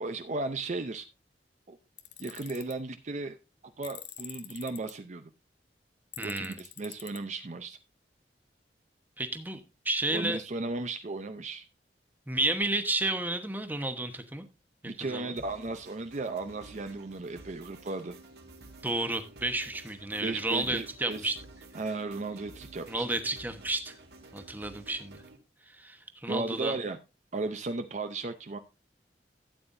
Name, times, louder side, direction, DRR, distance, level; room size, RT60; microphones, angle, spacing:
voice 1, 0.0-1.1 1.7-1.8 2.2-3.4 3.8-5.3 6.2-7.8 10.1-11.7 14.9-18.2 20.2-21.3 21.7-23.1 26.3-27.0 27.3-28.6, right 3 dB, 40° right, 8 dB, 0.6 m, -35 dB
Tools, 2.0-2.7 3.8-4.9 6.1-7.2, left 12 dB, 80° left, 0.9 m, -45 dB
voice 2, 6.2-6.6 9.2-10.4 12.3-14.4 15.0-15.3 18.8-21.4 22.9-23.9 24.3-25.2 25.7-26.8, right 2 dB, 10° right, 8 dB, 1.0 m, -31 dB
sound 1, 15.4-25.4, right 2 dB, 65° right, 1.8 m, -51 dB
12.5 x 8.9 x 2.6 m, 0.26 s
head